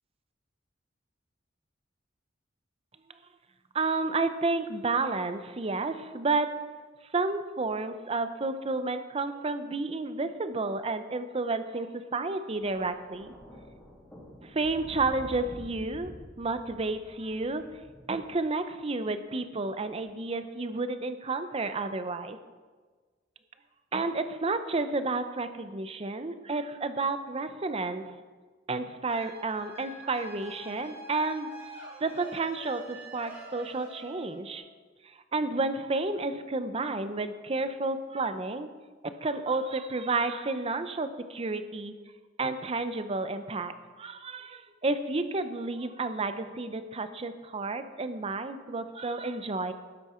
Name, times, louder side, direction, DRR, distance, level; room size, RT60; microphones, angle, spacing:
voice 1, 3.7-6.5 7.1-13.3 14.4-16.1 16.4-17.6 18.1-22.4 23.9-28.1 28.7-31.5 32.0-34.6 35.3-38.7 39.0-41.9 42.4-49.7, right 3 dB, 30° right, 10 dB, 0.6 m, -31 dB
Thunder, 12.5-18.9 19.9-20.1, equal, 5° left, 3.1 m, -48 dB
sound 1, 29.1-34.6, right 2 dB, 15° right, 2.6 m, -46 dB
12.0 x 9.3 x 4.4 m, 1.4 s
head